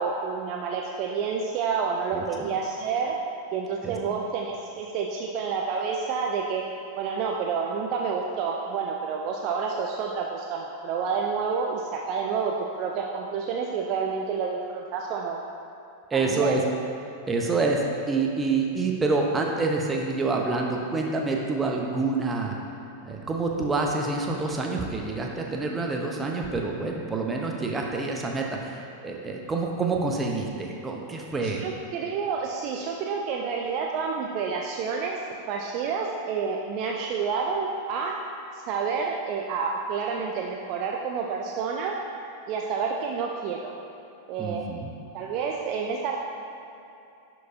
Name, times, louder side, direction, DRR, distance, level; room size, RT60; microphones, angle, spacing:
voice 1, 0.0-3.2 3.5-6.6 7.0-15.4 16.1-16.6 31.4-35.2 35.5-38.1 38.5-42.0 42.5-43.7 44.3-44.6 45.1-46.2, right 5 dB, 40° right, 0 dB, 0.5 m, -29 dB
voice 2, 2.1-2.5 3.8-3.9 16.1-16.6 17.3-22.5 23.0-31.6 44.4-44.9, right 3 dB, 15° right, 0 dB, 0.8 m, -27 dB
11.0 x 4.7 x 2.7 m, 2.8 s
figure-of-eight pair, 90°, 0 cm